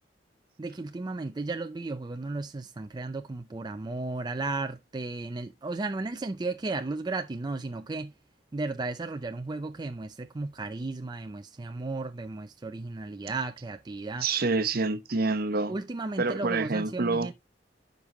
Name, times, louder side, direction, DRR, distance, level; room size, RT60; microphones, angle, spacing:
voice 1, 0.6-8.1 8.5-14.3 15.7-17.3, right 3 dB, 25° right, 0.4 m, -34 dB
voice 2, 14.2-15.7 16.2-17.3, right 3 dB, 55° right, 0.9 m, -27 dB
9.6 x 5.3 x 2.9 m
head